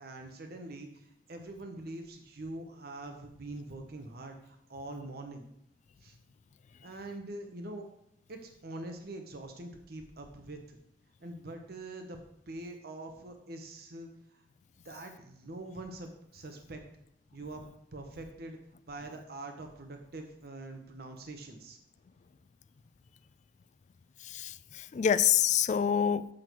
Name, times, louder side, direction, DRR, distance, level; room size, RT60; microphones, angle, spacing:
voice 1, 0.0-5.5 6.0-6.2 6.8-7.9 8.3-10.8 11.2-12.2 12.5-14.4 14.8-16.8 17.3-17.6 17.9-18.6 18.9-21.8, right 2 dB, 60° right, 4 dB, 0.9 m, -44 dB
voice 2, 24.2-26.3, left 8 dB, 40° left, 15 dB, 0.3 m, -27 dB
7.5 x 6.2 x 4.5 m, 0.78 s
head